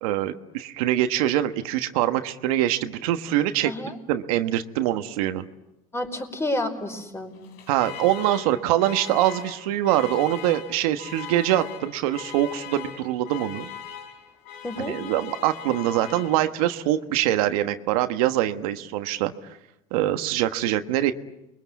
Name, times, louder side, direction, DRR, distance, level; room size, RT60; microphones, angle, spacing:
voice 1, 0.0-3.7 4.1-5.5 7.7-13.7 14.8-19.3 19.9-21.1, right 13 dB, 85° right, 8 dB, 1.3 m, -24 dB
voice 2, 3.6-4.0 5.9-7.3 14.6-15.0, left 1 dB, 15° left, 4 dB, 5.3 m, -30 dB
Alarm, 7.3-16.8, left 9 dB, 70° left, 3.8 m, -40 dB
29.5 x 22.5 x 8.3 m, 0.90 s
supercardioid pair, 100°, 18 cm